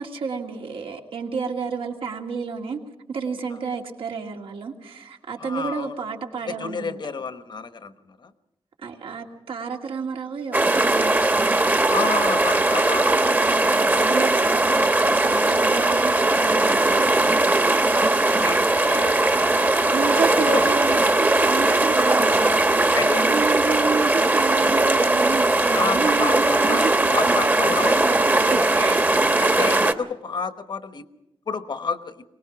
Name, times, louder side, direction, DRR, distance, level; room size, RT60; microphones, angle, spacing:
voice 1, 0.0-2.8 3.1-7.0 8.8-11.6 13.5-17.1 19.9-22.5 22.9-29.1, right 5 dB, 85° right, 2 dB, 2.3 m, -30 dB
voice 2, 5.4-6.1 6.5-8.3 11.9-13.4 17.8-20.7 22.9-23.3 25.7-28.3 29.4-31.0 31.5-32.2, left 5 dB, 55° left, 11 dB, 1.1 m, -31 dB
sound 1, 10.5-29.9, right 2 dB, 20° right, 1.0 m, -19 dB
23.5 x 18.5 x 5.9 m, 0.95 s
wide cardioid pair, 115°, 9 cm